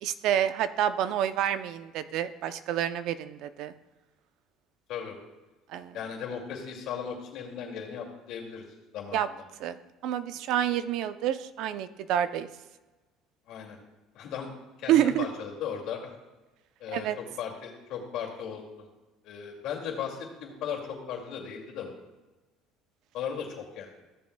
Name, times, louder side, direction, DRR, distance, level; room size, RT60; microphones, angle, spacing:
voice 1, 0.0-3.7 5.7-6.0 9.1-9.3 9.6-12.5 14.9-15.3 16.9-17.2, right 10 dB, 65° right, 12 dB, 0.6 m, -28 dB
voice 2, 5.9-8.6 8.9-9.3 13.5-13.8 14.1-14.5 14.8-16.1 16.8-18.9 19.2-22.0 23.1-23.9, left 7 dB, 65° left, -1 dB, 2.3 m, -37 dB
15.0 x 7.1 x 2.3 m, 1.1 s
supercardioid pair, 110°, 0 cm